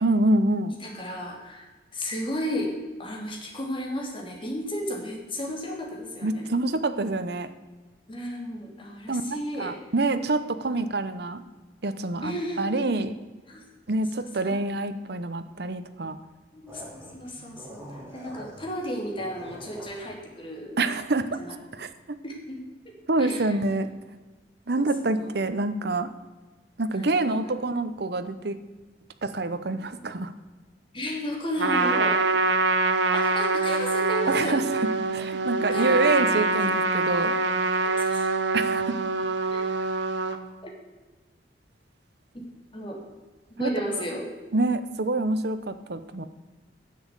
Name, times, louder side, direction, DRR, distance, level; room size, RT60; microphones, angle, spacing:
voice 1, 0.0-0.8 6.2-7.5 9.1-11.4 11.8-13.1 13.9-16.2 20.8-21.4 21.8-22.2 23.1-23.9 24.7-26.1 26.8-28.6 29.2-30.3 34.3-34.6 35.1-37.4 38.5-39.0 43.6-43.7 44.5-46.2, right 2 dB, 65° right, 11 dB, 0.9 m, -26 dB
voice 2, 0.8-6.5 8.1-9.8 10.7-10.8 12.2-12.8 13.5-13.6 14.4-14.6 16.5-20.8 21.4-21.5 22.2-22.6 22.8-23.5 24.7-25.3 26.9-27.4 30.9-32.2 33.1-34.6 35.6-36.6 37.8-38.3 39.5-39.6 40.6-40.7 42.3-42.4 42.7-43.0 43.6-44.3, equal, 30° left, -1 dB, 2.8 m, -34 dB
sound 1, 16.7-20.0, equal, 15° right, 2.7 m, -45 dB
Trumpet, 31.6-40.4, right 3 dB, 90° right, 1.0 m, -25 dB
10.5 x 7.3 x 8.1 m, 1.2 s
head